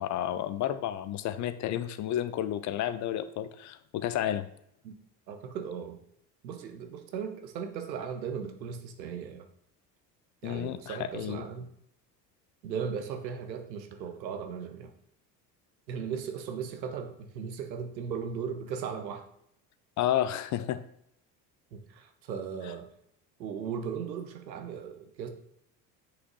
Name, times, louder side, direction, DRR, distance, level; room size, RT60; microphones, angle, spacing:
voice 1, 0.0-4.5 10.4-11.4 20.0-20.8, left 11 dB, 40° left, 13 dB, 0.4 m, -31 dB
voice 2, 5.3-6.0 6.4-9.5 10.4-11.7 12.6-14.9 15.9-19.3 21.7-22.9 23.4-25.3, right 7 dB, 85° right, 7 dB, 0.8 m, -37 dB
7.8 x 6.0 x 2.3 m, 0.73 s
hypercardioid pair, 65°, 50 cm